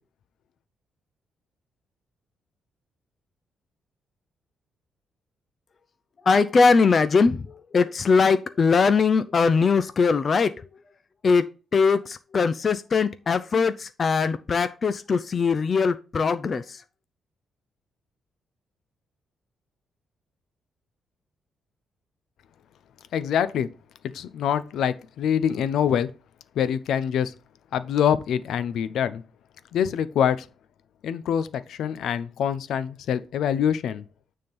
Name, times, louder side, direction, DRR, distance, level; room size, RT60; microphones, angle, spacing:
voice 1, 6.3-7.4 7.7-10.7 11.2-16.8, left 5 dB, 35° left, 0.5 m, -21 dB
voice 2, 23.1-23.7 24.1-26.1 26.6-27.3 27.7-29.2 29.7-30.5 31.0-34.0, left 8 dB, 75° left, 0.7 m, -25 dB
9.4 x 3.7 x 5.3 m
cardioid pair, 140°, 0 cm